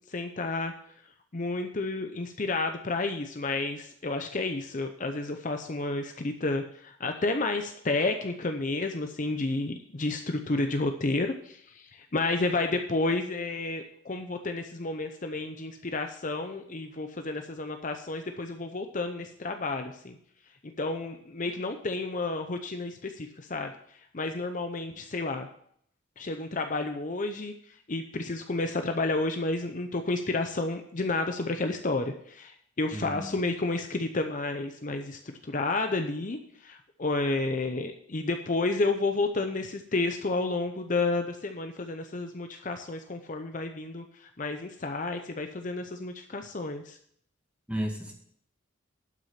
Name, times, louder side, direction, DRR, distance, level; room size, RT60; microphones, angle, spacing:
voice 1, 0.1-0.7 1.3-20.2 20.8-23.7 24.1-25.5 26.2-27.5 27.9-47.0, left 2 dB, 40° left, 6 dB, 0.7 m, -31 dB
voice 2, 32.9-33.3 47.7-48.1, equal, 5° right, 0 dB, 1.9 m, -33 dB
11.5 x 6.2 x 5.7 m, 0.65 s
head